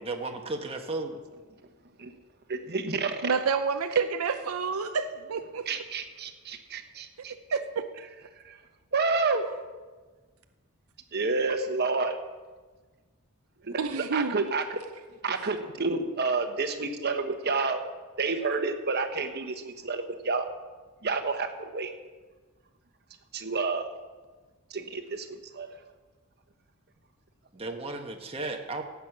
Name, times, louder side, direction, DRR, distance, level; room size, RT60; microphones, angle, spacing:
voice 1, 0.0-1.2 27.5-28.8, right 2 dB, 25° right, 3 dB, 1.2 m, -34 dB
voice 2, 2.5-3.3 5.7-7.3 8.4-8.6 8.9-9.5 11.1-12.2 13.6-14.8 15.2-17.8 18.2-20.5 21.0-21.9 23.3-23.9 24.7-25.7, right 4 dB, 50° right, 7 dB, 1.2 m, -29 dB
voice 3, 3.2-5.7 7.5-7.8 13.8-14.5, right 5 dB, 80° right, 8 dB, 0.6 m, -29 dB
16.0 x 8.4 x 6.0 m, 1.4 s
head